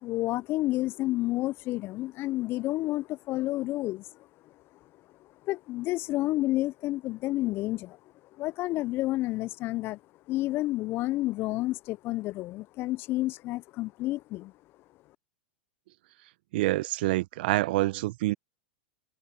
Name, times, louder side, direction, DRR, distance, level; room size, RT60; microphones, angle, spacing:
voice 1, 0.0-4.0 5.4-8.0 8.4-10.0 10.3-14.5, left 17 dB, 40° left, 0.5 m, -30 dB
voice 2, 16.5-18.3, right 18 dB, 60° right, 0.9 m, -26 dB
hypercardioid pair, 105°, 6 cm